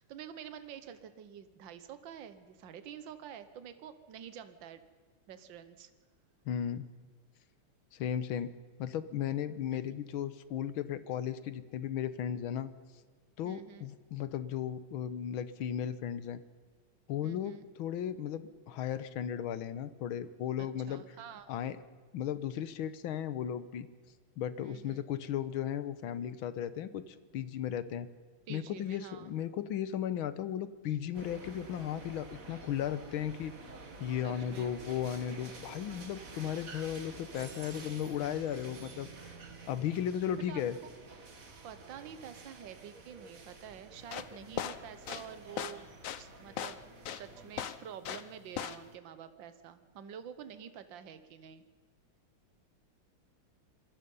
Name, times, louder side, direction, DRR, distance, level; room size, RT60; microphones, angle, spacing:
voice 1, 0.0-4.8 5.3-5.9 9.7-9.8 13.4-13.9 17.2-17.7 20.9-21.5 24.6-25.0 28.5-29.3 34.2-34.7 40.5-40.6 41.6-45.9 46.2-46.8 47.1-51.6, right 8 dB, 70° right, 11 dB, 1.8 m, -48 dB
voice 2, 6.5-6.9 7.9-8.5 8.8-12.7 13.4-16.4 17.1-21.0 21.5-21.8 22.1-23.9 24.4-28.1 28.5-33.6 34.0-39.3 39.7-40.8, left 9 dB, 85° left, 14 dB, 1.8 m, -35 dB
sound 1, 31.1-47.6, right 3 dB, 45° right, 2.2 m, -50 dB
sound 2, 44.0-48.3 48.6-48.9, left 9 dB, 55° left, 0.9 m, -38 dB
26.5 x 21.5 x 5.5 m, 1.5 s
omnidirectional pair, 2.2 m